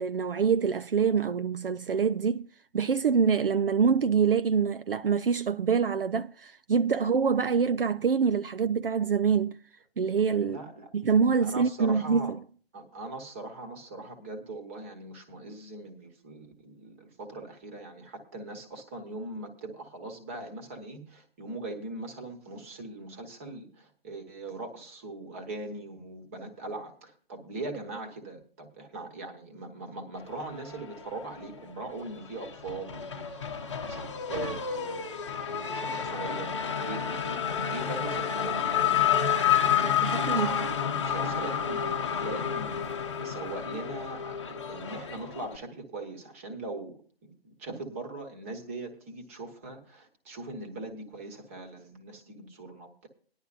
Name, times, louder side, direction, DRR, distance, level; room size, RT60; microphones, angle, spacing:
voice 1, 0.0-2.5 2.7-9.6 10.0-10.6 10.9-12.4 39.8-40.6, right 6 dB, 65° right, 0.5 m, -25 dB
voice 2, 10.4-10.9 11.4-12.3 12.7-33.3 33.8-39.0 39.4-53.1, right 2 dB, 15° right, 1.1 m, -41 dB
Race car auto racing / Accelerating revving vroom, 30.5-31.6 31.9-45.6, left 8 dB, 30° left, 0.9 m, -30 dB
19.0 x 11.0 x 2.5 m
figure-of-eight pair, 165°, 31 cm